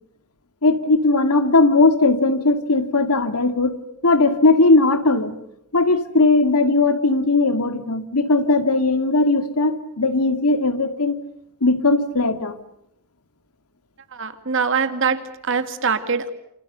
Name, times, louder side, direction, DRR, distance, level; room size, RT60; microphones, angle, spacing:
voice 1, 0.6-3.8 4.0-5.3 5.7-11.2 11.6-12.5, left 3 dB, 90° left, 9 dB, 2.4 m, -18 dB
voice 2, 14.1-16.3, right 5 dB, 60° right, 10 dB, 2.3 m, -23 dB
28.5 x 27.5 x 6.8 m, 0.76 s
head